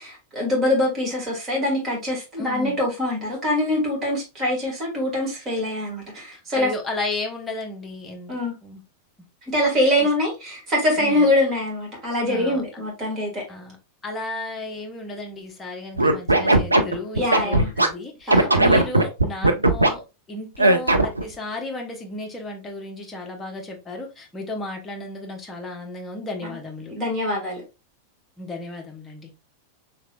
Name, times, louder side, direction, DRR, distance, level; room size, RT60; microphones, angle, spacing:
voice 1, 0.0-6.7 8.3-8.5 9.4-13.4 17.1-17.7 18.3-18.7 26.4-26.6 26.9-27.6, left 1 dB, 25° right, 1.8 m, -24 dB
voice 2, 2.4-2.8 6.3-8.4 8.6-8.8 10.0-10.1 11.0-11.3 12.2-12.8 13.5-13.8 14.0-20.0 20.3-26.9 28.4-29.3, left 2 dB, 15° left, 0.9 m, -34 dB
Scratching (performance technique), 16.0-17.9 18.3-19.9 20.6-21.2, right 2 dB, 85° right, 0.4 m, -17 dB
3.5 x 3.1 x 2.3 m
figure-of-eight pair, 90°, 0 cm